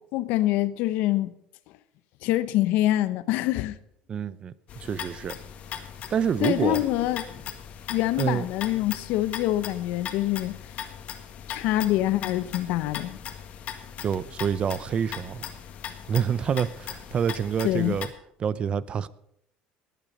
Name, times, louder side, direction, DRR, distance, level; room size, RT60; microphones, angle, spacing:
voice 1, 0.1-1.3 2.2-3.8 6.4-7.3 7.9-10.6 11.5-13.2 17.6-18.0, left 15 dB, 70° left, 0.9 m, -25 dB
voice 2, 4.1-5.4 6.1-6.8 8.2-8.4 14.0-15.4 16.1-18.1 18.4-19.1, right 7 dB, 35° right, 0.6 m, -27 dB
sound 1, 4.7-18.1, left 9 dB, 50° left, 1.8 m, -39 dB
19.0 x 8.9 x 5.4 m
cardioid pair, 120°, 3 cm